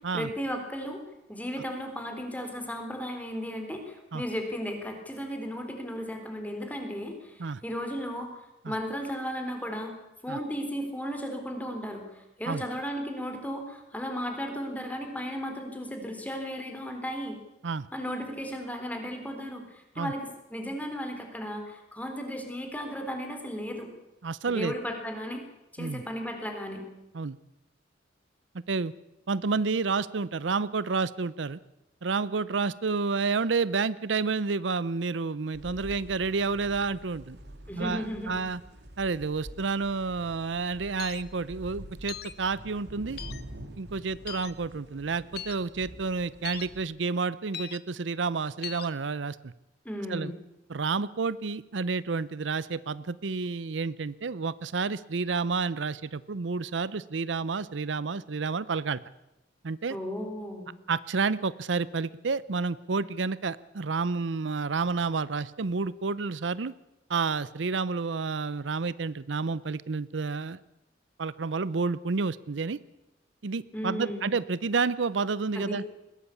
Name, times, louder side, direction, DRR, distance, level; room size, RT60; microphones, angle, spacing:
voice 1, 0.1-1.0 1.3-8.3 8.7-9.9 10.2-17.4 17.9-23.9 24.5-25.4 25.7-26.8 37.7-38.4 49.9-50.4 59.9-60.7 73.7-74.3 75.5-75.8, equal, 10° left, 4 dB, 3.7 m, -35 dB
voice 2, 24.2-24.7 25.8-26.0 27.1-27.4 28.7-28.9 29.3-31.6 32.0-37.4 37.8-38.6 39.0-43.2 43.8-49.5 50.1-50.3 50.7-59.0 59.6-60.0 60.9-66.7 67.1-70.6 71.2-72.8 73.4-75.8, right 4 dB, 85° right, 18 dB, 0.6 m, -30 dB
sound 1, 35.5-46.8, right 1 dB, 65° right, 2.7 m, -47 dB
sound 2, 41.0-41.2 42.1-42.3 43.2-43.4 44.3-44.5 45.4-45.6 46.4-46.7 47.5-47.8 48.6-48.9, left 10 dB, 55° left, 1.0 m, -38 dB
21.0 x 16.5 x 8.4 m, 0.93 s
head